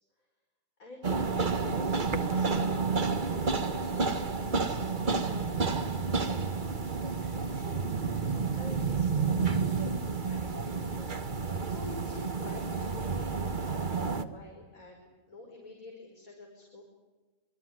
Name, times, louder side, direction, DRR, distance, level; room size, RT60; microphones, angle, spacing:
voice 1, 0.8-1.2 1.5-16.8, left 2 dB, 85° left, 0 dB, 5.6 m, -49 dB
sound 1, 1.0-14.2, right 4 dB, 35° right, 1.4 m, -30 dB
26.5 x 23.0 x 9.6 m, 1.2 s
omnidirectional pair, 1.4 m